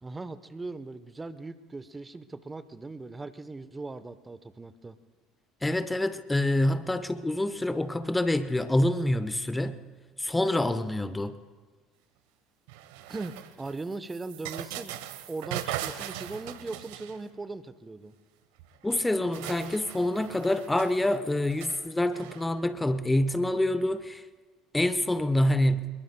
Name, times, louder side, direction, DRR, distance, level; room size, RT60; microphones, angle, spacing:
voice 1, 0.0-5.0 13.1-15.0 15.3-18.1, right 3 dB, 20° right, 0.9 m, -39 dB
voice 2, 5.6-9.8 10.2-11.4 18.8-24.2 24.7-25.9, left 1 dB, 10° left, 0.8 m, -26 dB
sound 1, 12.7-17.5 18.6-18.7 18.9-22.5, right 13 dB, 75° right, 1.0 m, -40 dB
26.5 x 22.0 x 2.2 m
hypercardioid pair, 65°, 0 cm